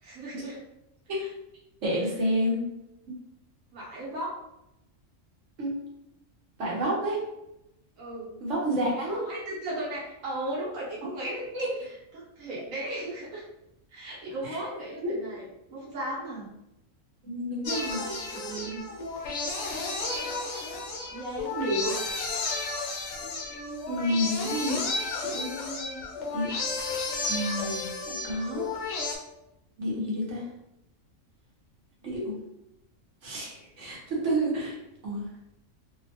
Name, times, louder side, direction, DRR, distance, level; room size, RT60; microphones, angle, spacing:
voice 1, 0.0-0.6 1.1-1.3 3.7-4.3 8.0-8.4 9.1-11.4 12.1-13.4 13.9-16.5 18.1-18.8 21.1-22.0, right 1 dB, 90° right, -5 dB, 1.3 m, -35 dB
voice 2, 1.8-2.7 3.1-3.2 5.6-5.7 6.6-7.2 8.4-9.2 11.0-11.1 11.5-11.7 14.4-14.6 15.0-15.1 17.2-18.0 23.9-24.8 25.2-26.0 26.3-26.5 27.3-28.7 29.8-30.5 32.0-32.3 33.2-34.8 35.0-35.2, equal, 65° right, -4 dB, 1.3 m, -30 dB
sound 1, 17.6-29.2, left 3 dB, 85° left, 1.0 m, -33 dB
3.0 x 2.2 x 2.8 m, 0.86 s
omnidirectional pair, 1.3 m